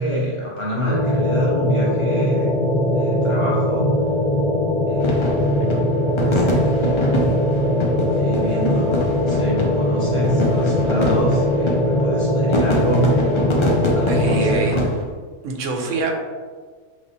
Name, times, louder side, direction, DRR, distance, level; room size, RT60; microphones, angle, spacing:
voice 1, 0.0-2.5 2.9-3.9 4.9-5.5 6.2-7.1 7.9-13.2 13.9-14.9, equal, 30° left, -6 dB, 0.9 m, -26 dB
sound 1, 0.8-14.6, left 1 dB, 80° left, 1.3 m, -20 dB
sound 2, 5.0-15.0, left 1 dB, 45° left, 0.3 m, -25 dB
voice 2, 14.1-14.8 15.4-16.2, right 3 dB, 85° right, 2 dB, 1.0 m, -25 dB
4.3 x 3.3 x 2.7 m, 1.5 s
omnidirectional pair, 1.3 m